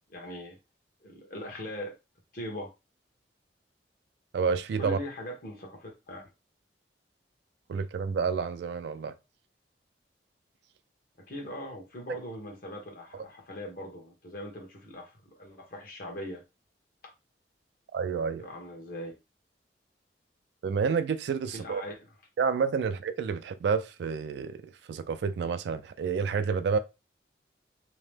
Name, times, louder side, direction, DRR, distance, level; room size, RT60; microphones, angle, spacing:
voice 1, 0.1-0.6 1.0-2.0 2.3-2.7 4.8-6.2 11.3-16.4 18.4-19.1 21.5-22.0, left 1 dB, 55° left, 1.0 m, -40 dB
voice 2, 4.3-5.0 7.7-9.1 17.9-18.5 20.6-21.8 22.4-24.6 24.9-26.8, right 5 dB, 70° right, 0.3 m, -29 dB
2.9 x 2.0 x 3.2 m
head